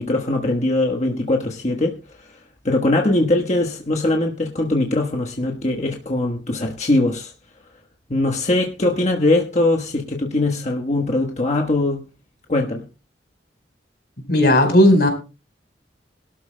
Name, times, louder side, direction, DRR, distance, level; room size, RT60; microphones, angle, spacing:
voice 1, 0.0-2.0 2.6-7.3 8.1-12.0 12.5-12.9, left 2 dB, 40° left, 1.3 m, -21 dB
voice 2, 14.3-15.1, left 1 dB, 60° left, 4.4 m, -14 dB
22.5 x 12.5 x 2.2 m
head